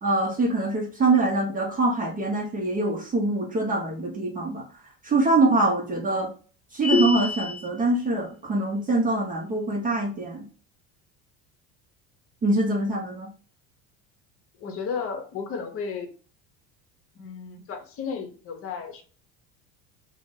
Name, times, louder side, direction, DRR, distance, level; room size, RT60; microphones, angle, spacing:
voice 1, 0.0-4.6 5.0-6.3 6.7-10.4 12.4-13.3, right 2 dB, 25° right, 0 dB, 0.6 m, -24 dB
sound 1, 6.8-7.7, left 3 dB, 90° left, 0.6 m, -25 dB
voice 2, 14.6-16.1 17.2-19.0, left 5 dB, 40° left, 5 dB, 0.7 m, -33 dB
2.5 x 2.0 x 3.6 m, 0.38 s
cardioid pair, 130°, 34 cm